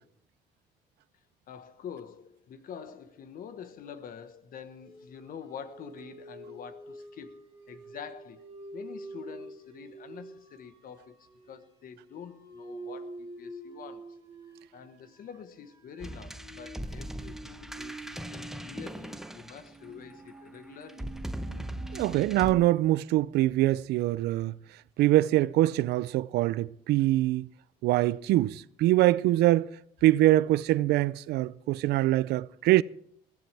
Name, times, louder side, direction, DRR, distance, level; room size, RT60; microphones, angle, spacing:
voice 1, 1.5-8.5 8.7-14.2 14.7-21.1, left 7 dB, 55° left, 1.3 m, -46 dB
sound 1, 4.8-22.7, right 1 dB, 25° right, 5.4 m, -47 dB
sound 2, 16.0-20.1 20.9-22.5, right 1 dB, ahead, 0.8 m, -39 dB
voice 2, 21.9-24.5 25.0-27.5 27.8-29.7 30.0-32.8, right 16 dB, 75° right, 0.5 m, -24 dB
21.0 x 14.5 x 3.4 m
cardioid pair, 110°, 17 cm